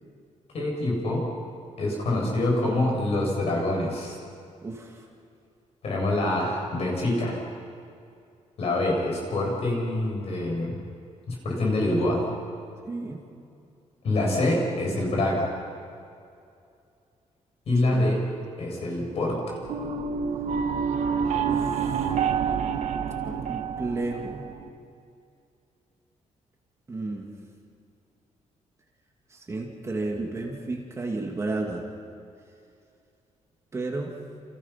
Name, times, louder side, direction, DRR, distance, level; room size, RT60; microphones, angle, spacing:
voice 1, 0.5-1.3 1.8-4.2 5.8-7.4 8.6-10.8 11.3-12.2 14.0-15.5 17.7-18.2 18.6-19.6, left 1 dB, 55° left, -1 dB, 7.8 m, -25 dB
voice 2, 4.6-5.1 12.9-13.2 17.8-18.2 21.4-22.1 23.2-24.5 26.9-27.3 29.3-31.8 33.7-34.1, right 2 dB, 20° right, 0 dB, 2.4 m, -32 dB
sound 1, 19.6-24.7, right 6 dB, 65° right, 1.5 m, -28 dB
29.5 x 29.0 x 6.0 m, 2.5 s
wide cardioid pair, 170°, 13 cm